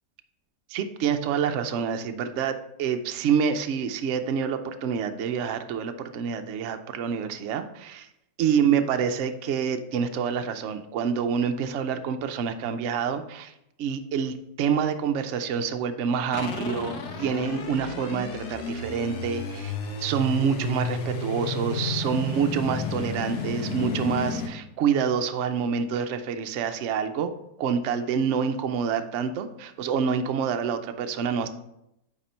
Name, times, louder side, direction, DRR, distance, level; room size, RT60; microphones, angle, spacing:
voice 1, 0.7-8.1 8.4-13.5 13.8-19.7 20.0-27.3 27.6-31.5, right 7 dB, 65° right, 7 dB, 0.7 m, -27 dB
sound 1, 16.3-24.5, left 3 dB, 80° left, 1.5 m, -32 dB
9.2 x 3.6 x 4.3 m, 0.83 s
omnidirectional pair, 1.8 m